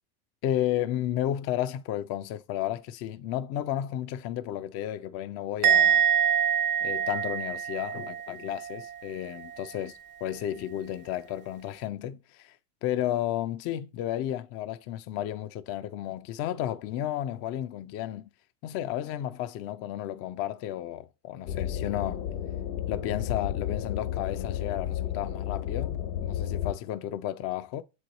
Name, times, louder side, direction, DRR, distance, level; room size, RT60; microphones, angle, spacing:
voice 1, 0.4-6.1 6.8-12.6 12.8-18.3 18.6-22.3 22.9-27.8, left 12 dB, 40° left, 0.4 m, -33 dB
Musical instrument, 5.6-9.0 9.3-9.7, right 8 dB, 30° right, 0.4 m, -25 dB
sound 1, 21.4-26.7, left 10 dB, 70° left, 1.4 m, -32 dB
7.5 x 3.2 x 3.9 m
supercardioid pair, 115°, 40 cm